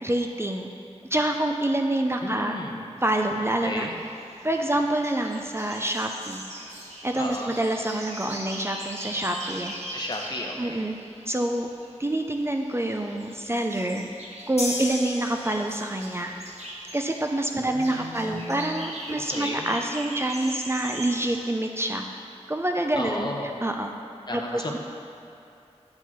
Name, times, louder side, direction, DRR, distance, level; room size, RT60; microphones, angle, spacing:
voice 1, 0.0-0.7 1.1-2.6 3.0-3.9 4.4-6.4 7.0-9.7 10.6-11.0 11.3-11.7 12.0-14.1 14.5-16.3 16.9-22.0 22.5-23.3 23.6-23.9 24.3-24.8, right 1 dB, 20° right, 3 dB, 0.5 m, -27 dB
voice 2, 2.2-2.9 3.4-3.9 7.2-7.5 9.9-10.8 17.6-18.9 19.3-19.7 22.9-23.5 24.3-24.8, left 1 dB, 40° left, 0 dB, 1.0 m, -34 dB
sound 1, 3.0-21.5, right 1 dB, 75° right, 1.2 m, -41 dB
sound 2, 14.6-16.1, left 2 dB, 65° left, 1.3 m, -33 dB
8.5 x 4.5 x 6.0 m, 2.7 s
wide cardioid pair, 70°, 12 cm